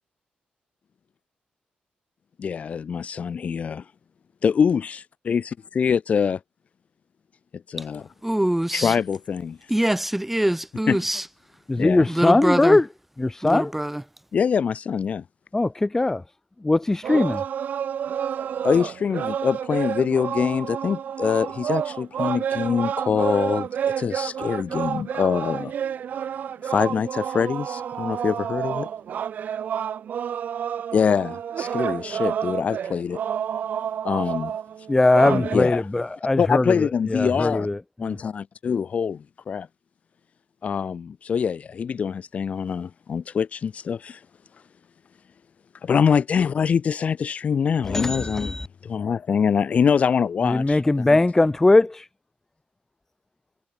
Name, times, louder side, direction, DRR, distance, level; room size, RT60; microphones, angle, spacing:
voice 1, 2.4-3.8 4.4-6.4 7.7-8.1 8.7-9.6 10.9-11.0 11.8-12.1 14.3-15.2 17.1-17.3 18.6-23.7 24.0-25.7 26.6-28.9 30.9-33.2 34.0-34.5 35.2-35.9 36.4-37.7 38.0-39.7 40.6-44.2 45.8-51.2, left 6 dB, 45° left, 1.1 m, -24 dB
voice 2, 8.2-8.9 9.7-11.2 12.1-12.8 13.4-14.0, right 1 dB, 5° right, 4.9 m, -24 dB
voice 3, 11.7-12.8 13.2-13.7 15.5-16.2 16.6-17.4 34.9-36.6 37.1-37.7 38.0-38.2 47.9-48.7 50.5-52.0, left 2 dB, 15° left, 1.3 m, -20 dB
sound 1, 17.0-35.6, right 8 dB, 65° right, 6.5 m, -29 dB
wide cardioid pair, 130°, 3 cm